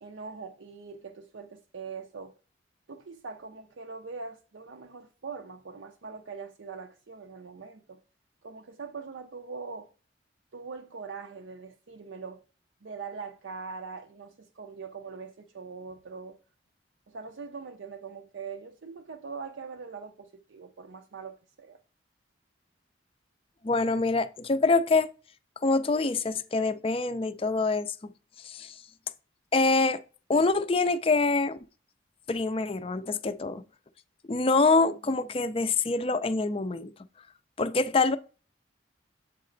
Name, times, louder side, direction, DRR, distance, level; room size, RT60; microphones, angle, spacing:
voice 1, 0.0-2.3 2.9-8.0 8.4-9.9 10.5-12.4 12.8-16.4 17.1-21.8, right 5 dB, 80° right, 0.6 m, -42 dB
voice 2, 23.6-25.1 25.6-28.1 28.4-28.8 29.5-30.0 30.3-31.6 32.3-33.6 34.3-36.9 37.6-38.2, left 3 dB, 30° left, 0.4 m, -25 dB
7.5 x 4.1 x 3.8 m
head